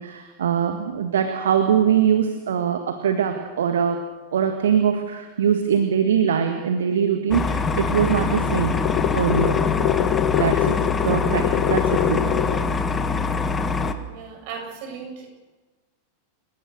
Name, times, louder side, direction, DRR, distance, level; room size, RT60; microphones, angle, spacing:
voice 1, 0.0-4.0 4.3-8.8 9.1-9.6 10.4-12.4, right 8 dB, 65° right, 7 dB, 1.7 m, -22 dB
sound 1, 7.3-13.9, left 4 dB, 15° left, 1.7 m, -24 dB
sound 2, 7.9-12.8, left 13 dB, 40° left, 1.2 m, -25 dB
voice 2, 14.1-15.3, right 6 dB, 45° right, 1 dB, 7.8 m, -36 dB
29.5 x 17.0 x 6.6 m, 1.2 s
figure-of-eight pair, 90°, 0 cm